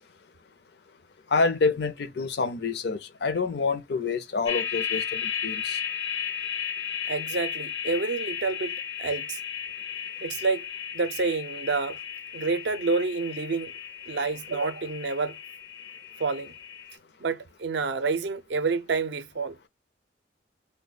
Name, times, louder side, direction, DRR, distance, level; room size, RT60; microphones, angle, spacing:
voice 1, 1.3-5.8, left 4 dB, 60° left, 0.5 m, -27 dB
sound 1, 4.4-16.9, left 9 dB, 85° left, 1.0 m, -34 dB
voice 2, 7.1-9.4 10.2-10.7 10.9-12.0 12.3-13.7 14.1-15.4 16.2-16.5 17.2-19.6, right 4 dB, 65° right, 0.5 m, -28 dB
3.4 x 2.2 x 3.8 m
head